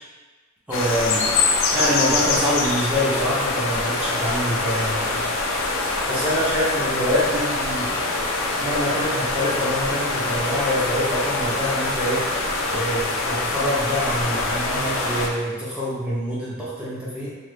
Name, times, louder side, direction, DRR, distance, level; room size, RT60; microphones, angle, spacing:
sound 1, 0.7-15.3, left 3 dB, 65° left, 0.4 m, -24 dB
voice 1, 0.7-5.3 6.0-8.0 8.6-12.3 12.7-17.3, equal, 5° right, -8 dB, 0.5 m, -25 dB
3.0 x 2.1 x 3.2 m, 1.3 s
head